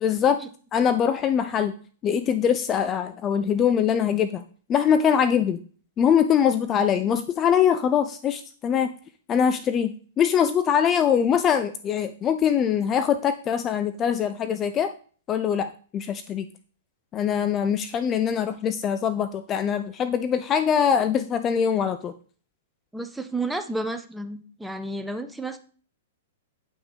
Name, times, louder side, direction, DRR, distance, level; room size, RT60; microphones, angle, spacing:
voice 1, 0.0-0.4 0.7-1.7 2.0-4.4 4.7-5.6 6.0-8.9 9.3-14.9 15.3-16.5 17.1-22.1, left 8 dB, 25° left, 10 dB, 0.6 m, -23 dB
voice 2, 22.9-25.6, right 2 dB, 5° right, 8 dB, 1.0 m, -31 dB
9.2 x 5.9 x 5.0 m, 0.41 s
figure-of-eight pair, 105°, 0 cm